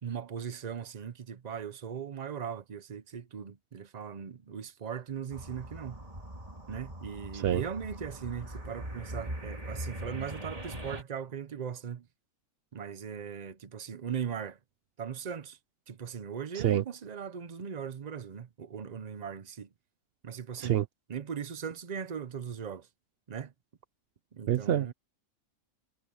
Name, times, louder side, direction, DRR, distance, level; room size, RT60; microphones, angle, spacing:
voice 1, 0.0-6.0 6.7-12.1 12.7-14.6 15.0-15.6 15.9-19.7 20.2-20.8 21.1-22.9 23.3-23.5 24.3-24.9, right 7 dB, 40° right, 0.6 m, -39 dB
sound 1, 5.3-11.0, right 1 dB, 25° right, 2.7 m, -41 dB
voice 2, 24.5-24.9, right 11 dB, 80° right, 0.5 m, -27 dB
omnidirectional pair, 1.6 m